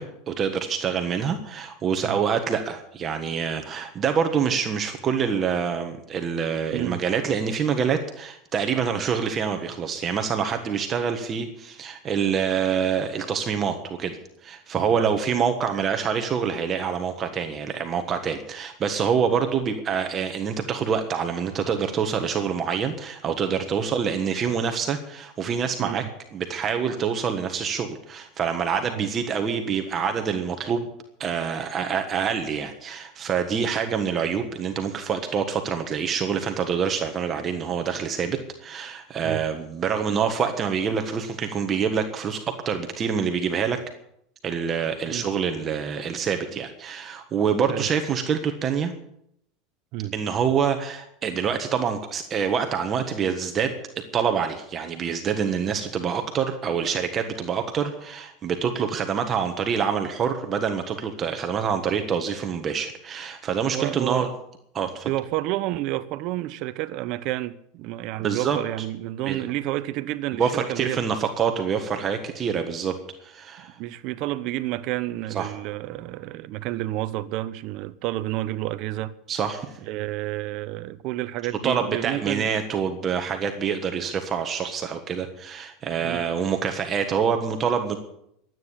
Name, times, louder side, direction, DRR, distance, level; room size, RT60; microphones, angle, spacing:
voice 1, 0.0-26.0 26.3-30.9 31.2-43.8 44.4-48.9 50.1-64.3 64.7-65.1 68.2-68.6 69.3-69.4 70.3-72.9 73.2-73.8 75.3-75.5 79.3-79.7 81.6-88.0, right 6 dB, 30° right, 1.4 m, -26 dB
voice 2, 63.6-64.3 65.0-71.0 73.8-79.1 79.8-82.5 86.0-86.2, right 16 dB, 55° right, 1.0 m, -30 dB
13.0 x 9.3 x 9.8 m
supercardioid pair, 140°, 0 cm